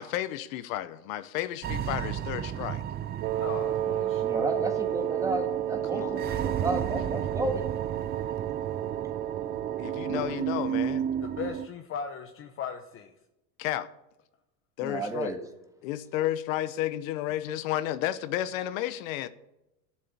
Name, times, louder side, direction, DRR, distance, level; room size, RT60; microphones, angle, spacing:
voice 1, 0.0-2.8 5.9-6.5 9.8-11.1 13.6-13.9 14.8-15.3 15.8-19.3, left 13 dB, 80° left, 1.0 m, -32 dB
sound 1, 1.6-11.7, right 9 dB, 25° right, 0.5 m, -33 dB
Wind instrument woodwind instrument, 3.2-10.5, right 12 dB, 60° right, 0.8 m, -32 dB
voice 2, 3.3-4.4 11.2-13.1, left 6 dB, 30° left, 0.9 m, -38 dB
voice 3, 4.2-7.7 10.1-10.2 14.8-15.4, right 2 dB, 10° right, 1.7 m, -32 dB
12.5 x 7.5 x 8.6 m
supercardioid pair, 145°, 40 cm